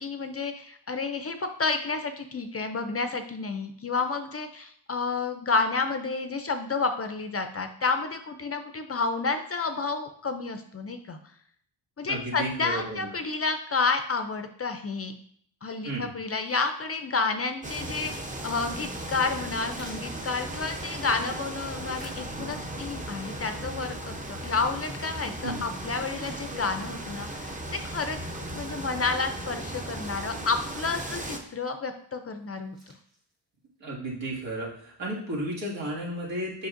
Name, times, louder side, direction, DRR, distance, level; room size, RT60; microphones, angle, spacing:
voice 1, 0.0-11.2 12.0-15.1 15.6-32.8, left 4 dB, 35° left, 7 dB, 0.4 m, -30 dB
voice 2, 12.1-13.1 15.8-16.1 25.4-25.7 33.8-36.7, right 1 dB, 75° right, -5 dB, 2.1 m, -33 dB
sound 1, 16.4-16.9 17.4-17.5 17.8-20.9 21.5-22.7 23.3-23.4 24.1-25.4 25.8-25.9 26.2-27.0 27.4-27.5 29.5-29.6 29.8-30.9 31.5-31.9 32.4-33.7, right 1 dB, 55° right, 2.4 m, -54 dB
sound 2, 17.6-31.4, right 1 dB, 15° right, 0.6 m, -37 dB
7.5 x 5.3 x 2.5 m, 0.63 s
wide cardioid pair, 140°, 45 cm